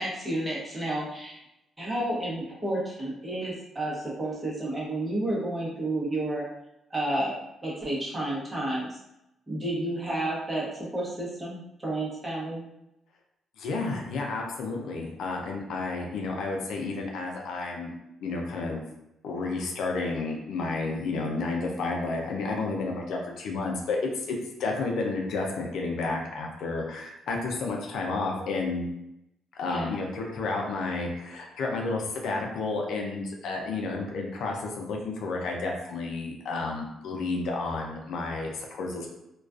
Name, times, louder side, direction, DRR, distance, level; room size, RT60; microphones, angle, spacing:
voice 1, 0.0-1.4 1.8-6.5 6.9-9.0 9.5-12.6 29.7-29.9, right 1 dB, 20° right, -5 dB, 0.9 m, -31 dB
voice 2, 13.6-18.0 18.2-18.8 19.2-28.8 29.6-39.1, left 3 dB, 75° left, 0 dB, 0.4 m, -31 dB
2.3 x 2.3 x 2.3 m, 0.85 s
cardioid pair, 90°, 0 cm